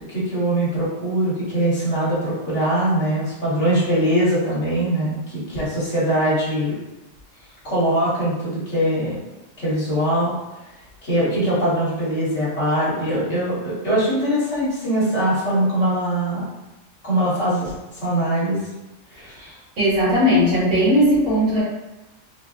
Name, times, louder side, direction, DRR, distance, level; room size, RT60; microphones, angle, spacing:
voice 1, 0.1-6.8 7.6-9.2 9.6-10.3 11.0-16.4 17.0-17.7 18.0-18.6 19.1-19.6, right 1 dB, 60° left, -9 dB, 1.7 m, -22 dB
voice 2, 19.8-21.6, equal, 85° right, -9 dB, 2.1 m, -17 dB
4.3 x 2.6 x 2.5 m, 1.0 s
omnidirectional pair, 1.4 m